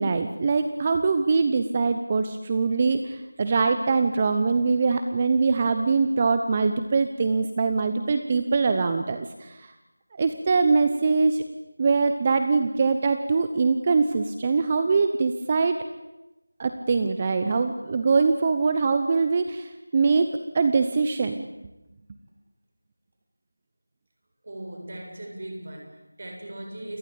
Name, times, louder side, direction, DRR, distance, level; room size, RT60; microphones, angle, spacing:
voice 1, 0.0-9.7 10.2-11.4 11.8-15.8 16.6-21.5, right 4 dB, 20° right, 8 dB, 0.9 m, -23 dB
voice 2, 24.4-27.0, right 1 dB, 40° right, 2 dB, 7.8 m, -39 dB
29.0 x 23.0 x 8.6 m, 0.99 s
figure-of-eight pair, 175°, 0 cm